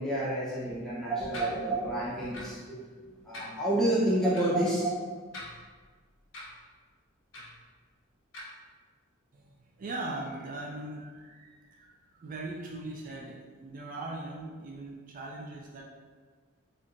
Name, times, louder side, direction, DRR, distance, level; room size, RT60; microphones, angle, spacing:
voice 1, 0.0-5.4, right 1 dB, ahead, -9 dB, 0.7 m, -29 dB
sound 1, 1.3-1.5 2.3-2.6 3.3-3.5 4.3-4.4 5.3-5.8 6.3-6.5 7.3-7.6 8.3-8.4, left 1 dB, 65° left, 1.2 m, -42 dB
voice 2, 9.3-15.8, right 2 dB, 40° right, -1 dB, 0.4 m, -40 dB
4.3 x 2.5 x 2.5 m, 1.5 s
head